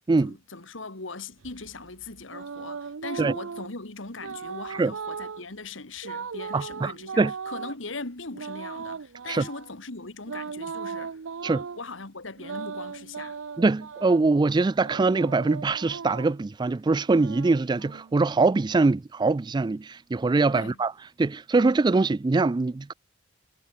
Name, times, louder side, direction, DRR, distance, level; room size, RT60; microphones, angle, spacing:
voice 1, 0.2-11.2 11.8-13.4 20.6-20.8, left 3 dB, 70° left, 2.3 m, -40 dB
sound 1, 1.4-3.7 4.2-5.4 6.0-7.8 8.3-9.7 10.3-11.8 12.4-14.2 14.8-16.4 17.0-18.4, right 5 dB, 90° right, 0.7 m, -38 dB
voice 2, 6.5-7.3 9.3-9.5 11.4-11.6 13.6-20.9 21.2-22.9, right 3 dB, 20° right, 0.3 m, -23 dB
head